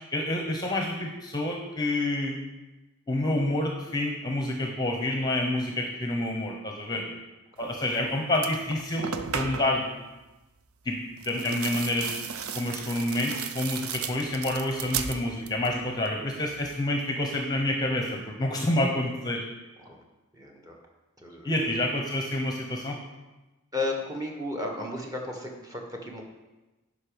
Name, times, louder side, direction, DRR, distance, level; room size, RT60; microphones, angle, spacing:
voice 1, 0.1-2.4 3.1-7.0 7.6-9.1 9.3-9.9 10.8-11.0 11.2-12.1 12.5-19.4 21.4-23.0, left 1 dB, 20° left, 2 dB, 0.9 m, -28 dB
sound 1, 7.9-8.0 8.3-9.8 11.2-15.8 16.1-16.7, right 7 dB, 70° right, 0.6 m, -35 dB
voice 2, 20.3-20.8 21.2-21.8 23.7-26.2, left 2 dB, 15° right, 1 dB, 1.3 m, -35 dB
11.0 x 5.2 x 5.2 m, 1.1 s
head